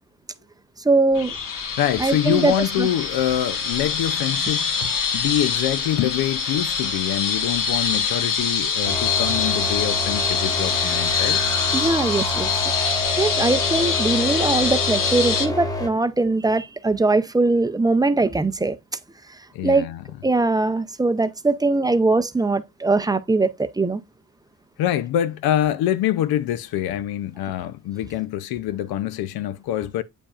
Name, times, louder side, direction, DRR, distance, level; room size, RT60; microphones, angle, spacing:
voice 1, 0.8-1.4 2.0-2.9 11.7-12.5 13.2-18.8 19.6-19.9 20.2-24.0, right 3 dB, 10° right, 0.4 m, -21 dB
sound 1, 1.1-15.5, left 6 dB, 65° left, 1.3 m, -24 dB
voice 2, 1.8-11.4 19.5-20.0 24.8-30.0, left 12 dB, 90° left, 0.6 m, -25 dB
sound 2, 8.8-15.9, left 1 dB, 10° left, 1.1 m, -28 dB
8.7 x 5.1 x 2.4 m
cardioid pair, 125°, 35 cm